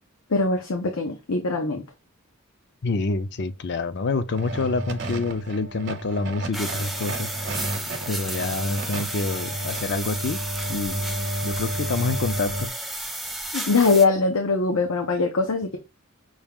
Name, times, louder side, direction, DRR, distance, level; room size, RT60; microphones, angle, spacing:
voice 1, 0.3-1.8 13.5-15.8, left 3 dB, 85° left, 0.8 m, -22 dB
voice 2, 2.8-7.3 8.1-10.4 10.7-11.0 11.4-12.7, left 3 dB, 55° left, 0.5 m, -27 dB
sound 1, 4.3-12.7, right 1 dB, 55° right, 0.8 m, -32 dB
sound 2, 6.5-14.0, right 1 dB, ahead, 0.5 m, -33 dB
6.1 x 2.4 x 3.5 m
head